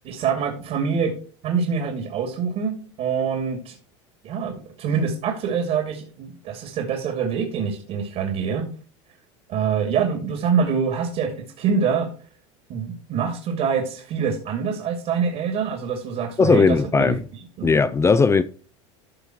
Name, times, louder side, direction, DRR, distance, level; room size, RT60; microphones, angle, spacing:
voice 1, 0.0-1.1 1.4-3.7 4.2-8.6 9.5-12.1 12.7-17.1 17.6-17.7, right 6 dB, 55° right, 2.5 m, -25 dB
voice 2, 16.4-17.2 17.6-18.4, left 4 dB, 20° left, 0.5 m, -17 dB
14.0 x 5.4 x 3.0 m
hypercardioid pair, 100°, 15 cm